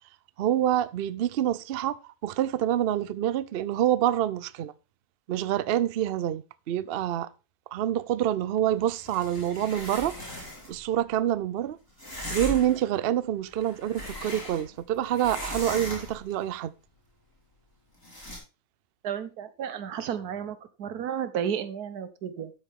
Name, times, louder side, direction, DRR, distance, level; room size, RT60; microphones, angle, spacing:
voice 1, 0.4-4.7 5.3-7.3 7.7-11.8 12.3-16.7, right 11 dB, 60° right, 0.6 m, -27 dB
sound 1, 8.9-10.8 12.0-12.8 13.5-14.8 15.1-16.3 18.0-18.4, left 1 dB, 15° left, 4.5 m, -38 dB
voice 2, 19.0-22.5, right 8 dB, 90° right, 1.5 m, -32 dB
12.5 x 6.9 x 3.6 m
omnidirectional pair, 1.6 m